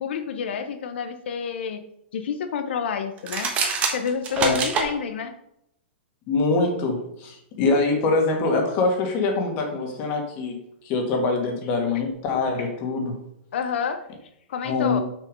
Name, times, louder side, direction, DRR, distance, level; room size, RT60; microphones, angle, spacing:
voice 1, 0.0-1.8 2.1-3.5 3.9-5.3 13.5-14.0 14.5-15.0, left 6 dB, 70° left, 8 dB, 0.9 m, -29 dB
sound 1, 3.2-4.9, right 5 dB, 20° right, 1.2 m, -25 dB
voice 2, 6.3-10.6 10.8-13.2 14.6-15.0, left 3 dB, 30° left, 3 dB, 1.8 m, -24 dB
6.3 x 5.5 x 5.2 m, 0.79 s
hypercardioid pair, 160°, 6 cm